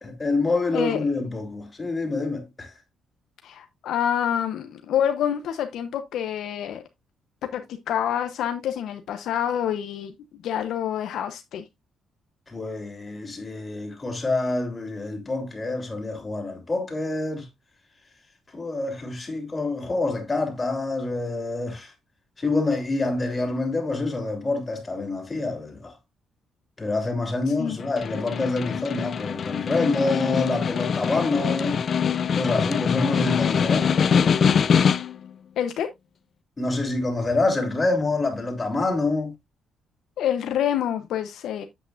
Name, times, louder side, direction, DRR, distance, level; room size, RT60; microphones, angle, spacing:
voice 1, 0.0-2.7 12.5-17.5 18.5-21.9 22.4-25.9 26.8-31.8 32.3-33.9 36.6-39.3, left 3 dB, 25° left, 3.3 m, -26 dB
voice 2, 0.7-1.0 3.4-6.8 7.5-10.1 10.4-11.6 27.6-27.8 35.6-35.9 40.2-41.7, left 9 dB, 75° left, 0.9 m, -27 dB
Snare drum, 27.8-35.3, left 7 dB, 50° left, 0.6 m, -23 dB
8.5 x 8.1 x 2.5 m
cardioid pair, 90°, 0 cm